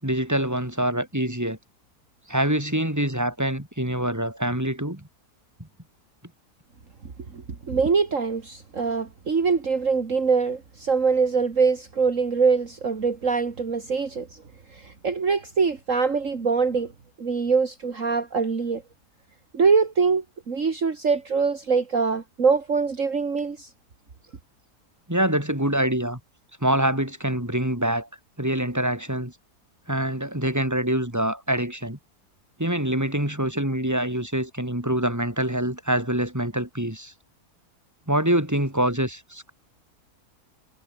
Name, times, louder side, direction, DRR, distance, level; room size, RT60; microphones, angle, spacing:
voice 1, 0.0-1.6 2.3-5.0 25.1-26.2 26.6-28.1 28.4-29.3 29.9-32.0 32.6-37.1 38.1-39.5, right 1 dB, 10° right, 5.3 m, -25 dB
voice 2, 7.3-14.4 14.7-16.9 17.2-18.8 19.5-23.7, right 5 dB, 50° right, 2.4 m, -23 dB
omnidirectional pair, 1.7 m